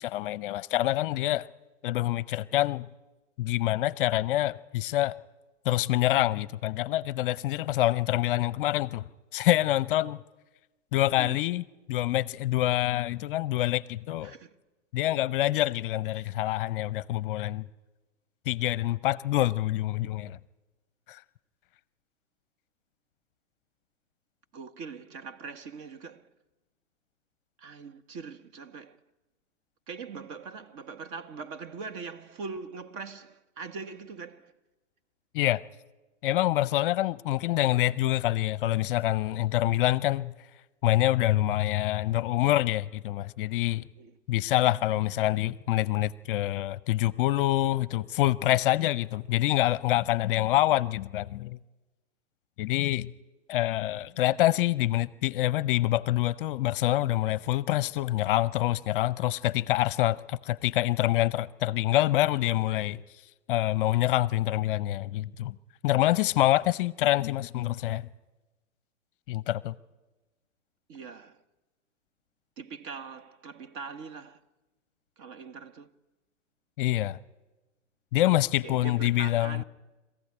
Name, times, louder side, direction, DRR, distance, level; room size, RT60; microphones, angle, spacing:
voice 1, 0.0-1.5 1.8-2.9 3.4-5.1 5.6-9.0 9.3-10.2 10.9-11.6 11.9-14.3 14.9-17.6 18.5-20.4 21.1-21.2 35.3-35.6 36.2-40.3 40.8-43.9 44.3-51.6 52.6-53.1 53.5-63.0 63.5-65.5 65.8-68.1 69.3-69.7 76.8-77.2 78.1-79.6, left 15 dB, 45° left, 0.7 m, -26 dB
voice 2, 11.1-11.4 14.2-14.6 16.2-16.3 24.5-26.3 27.6-29.0 29.9-34.5 44.0-44.2 70.9-71.4 72.6-74.4 75.2-75.9 78.6-79.6, right 5 dB, 40° right, 1.3 m, -42 dB
25.5 x 15.0 x 9.9 m
hypercardioid pair, 125°, 37 cm